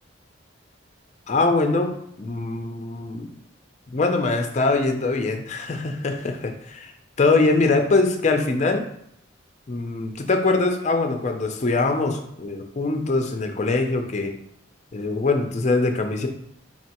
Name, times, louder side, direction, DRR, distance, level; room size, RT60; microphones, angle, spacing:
voice 1, 1.3-1.9 2.2-3.3 3.9-6.9 7.2-8.8 9.7-14.3 14.9-16.3, left 3 dB, 35° left, 5 dB, 0.4 m, -23 dB
4.5 x 3.2 x 2.9 m, 0.73 s
head